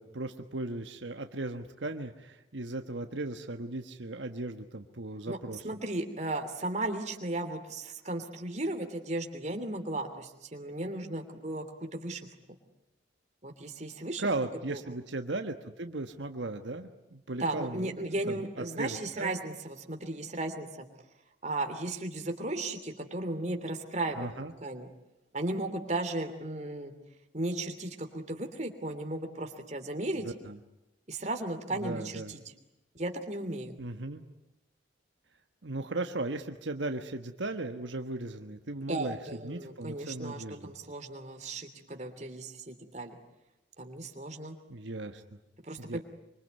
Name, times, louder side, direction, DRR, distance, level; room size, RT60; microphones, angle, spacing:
voice 1, 0.0-5.6 14.2-17.9 18.3-18.4 18.8-19.4 24.2-24.5 30.2-30.6 31.7-32.3 33.8-34.2 35.6-39.2 39.4-40.7 44.7-45.2 45.8-46.0, right 2 dB, 85° right, 6 dB, 1.4 m, -37 dB
voice 2, 5.6-12.3 13.4-14.2 14.7-14.8 17.4-20.9 21.4-24.2 24.6-24.9 25.3-26.9 27.3-30.3 31.1-32.4 32.9-33.8 38.8-43.2 43.8-44.5 45.6-46.0, right 2 dB, 40° right, 6 dB, 3.0 m, -35 dB
25.5 x 25.0 x 9.4 m, 0.91 s
head